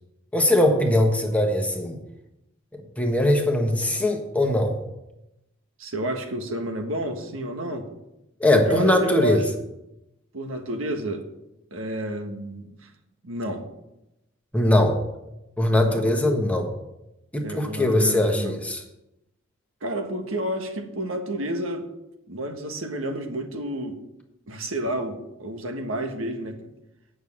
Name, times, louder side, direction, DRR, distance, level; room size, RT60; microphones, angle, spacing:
voice 1, 0.3-2.0 2.7-4.8 8.4-9.4 14.5-15.0 15.6-16.7 17.3-18.8, left 1 dB, 5° left, 3 dB, 1.3 m, -21 dB
voice 2, 5.8-7.9 8.7-9.4 10.3-11.3 11.7-12.9 13.2-13.7 15.8-16.0 17.4-18.5 19.8-21.8 22.3-24.0 24.5-26.7, right 1 dB, 85° right, 5 dB, 1.4 m, -30 dB
9.0 x 6.5 x 7.4 m, 0.89 s
head